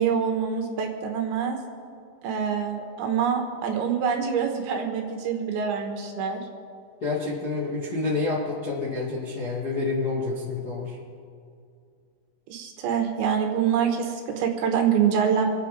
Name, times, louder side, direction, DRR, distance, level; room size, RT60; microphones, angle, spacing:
voice 1, 0.0-1.6 2.2-6.4 12.5-15.5, right 7 dB, 70° right, 3 dB, 3.3 m, -25 dB
voice 2, 7.0-11.0, left 3 dB, 85° left, -6 dB, 0.8 m, -28 dB
25.5 x 8.9 x 5.3 m, 2.4 s
omnidirectional pair, 5.8 m